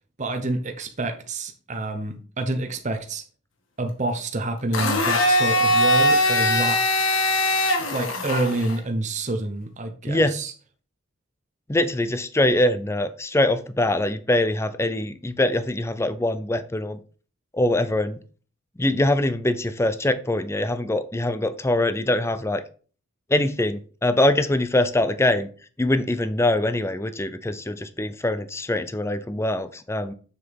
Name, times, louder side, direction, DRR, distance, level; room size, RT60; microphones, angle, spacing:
voice 1, 0.2-3.2 3.8-6.8 7.9-10.5, right 2 dB, 35° right, 5 dB, 0.8 m, -28 dB
Domestic sounds home sounds, 4.7-8.8, left 1 dB, 70° left, 1.6 m, -21 dB
voice 2, 11.7-17.0 17.5-18.2 18.8-22.6 23.3-25.5 25.8-30.1, left 1 dB, 15° left, 12 dB, 0.5 m, -23 dB
6.9 x 6.8 x 3.5 m, 0.40 s
head